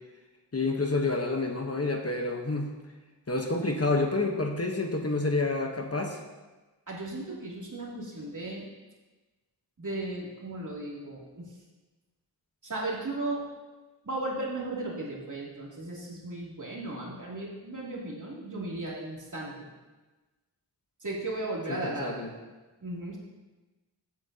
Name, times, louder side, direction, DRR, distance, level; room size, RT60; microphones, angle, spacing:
voice 1, 0.5-2.7 3.3-6.2 21.8-22.3, left 3 dB, 35° left, 2 dB, 1.1 m, -28 dB
voice 2, 6.9-8.7 9.8-11.5 12.6-13.4 14.0-19.7 21.0-22.3 22.8-23.2, right 2 dB, 45° right, -4 dB, 2.9 m, -36 dB
15.5 x 8.7 x 2.9 m, 1.2 s
wide cardioid pair, 85°, 42 cm